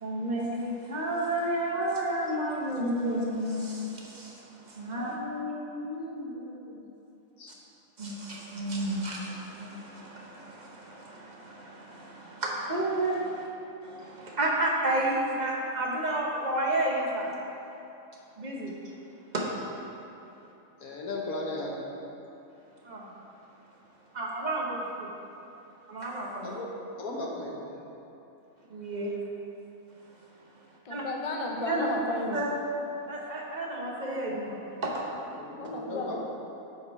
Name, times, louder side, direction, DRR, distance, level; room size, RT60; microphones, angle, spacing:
voice 1, 0.0-5.2 8.0-13.5 13.8-17.3 18.4-18.7 19.3-19.7 22.8-23.1 24.1-25.1 25.9-26.5 28.7-29.2 30.9-31.0 31.6-31.9 32.3-32.5 33.1-35.1, right 1 dB, 35° right, -2 dB, 1.0 m, -31 dB
voice 2, 5.0-6.8 7.4-7.5 20.8-21.8 26.4-26.7 27.0-27.7 35.3-36.2, left 2 dB, 85° left, -2 dB, 1.5 m, -37 dB
voice 3, 30.8-32.4 35.6-36.2, left 2 dB, 45° left, 1 dB, 0.4 m, -33 dB
8.5 x 4.7 x 4.7 m, 2.9 s
omnidirectional pair, 1.5 m